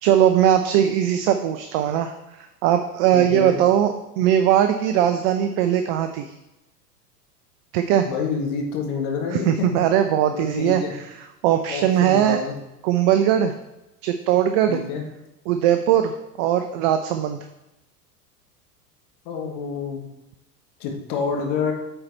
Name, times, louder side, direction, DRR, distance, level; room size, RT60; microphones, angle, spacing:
voice 1, 0.0-6.3 7.7-8.1 9.3-10.8 11.4-12.4 12.8-13.5 14.0-14.8 15.5-16.1 16.4-17.4, right 10 dB, 40° right, 8 dB, 0.5 m, -20 dB
voice 2, 3.1-3.6 8.0-9.7 10.3-10.9 11.7-12.6 14.7-15.0 19.2-20.0 20.8-21.7, left 5 dB, 50° left, 1 dB, 1.7 m, -28 dB
8.6 x 4.5 x 4.1 m, 0.94 s
figure-of-eight pair, 90°, 48 cm